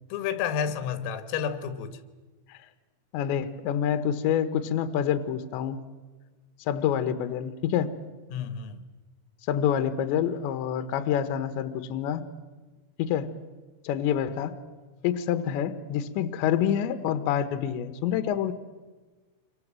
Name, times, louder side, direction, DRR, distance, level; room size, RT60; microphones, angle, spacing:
voice 1, 0.1-2.0 8.3-8.8, left 7 dB, 90° left, 4.0 m, -30 dB
voice 2, 3.1-5.8 6.7-7.9 9.5-12.2 13.0-13.3 13.8-14.5 15.0-18.5, left 9 dB, 70° left, 3.2 m, -27 dB
26.5 x 24.0 x 7.5 m
omnidirectional pair, 5.8 m